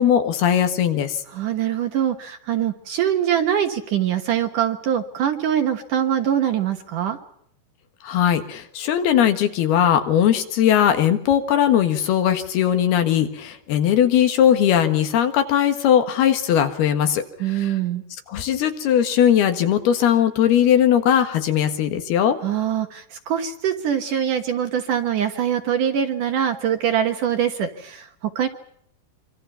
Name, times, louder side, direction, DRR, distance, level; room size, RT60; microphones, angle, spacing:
voice 1, 0.0-1.2 8.0-17.8 18.3-22.4, left 9 dB, 70° left, 8 dB, 3.5 m, -19 dB
voice 2, 1.3-7.2 17.4-18.0 22.4-28.5, right 9 dB, 60° right, 6 dB, 2.5 m, -23 dB
26.0 x 25.0 x 5.7 m, 0.71 s
omnidirectional pair, 4.8 m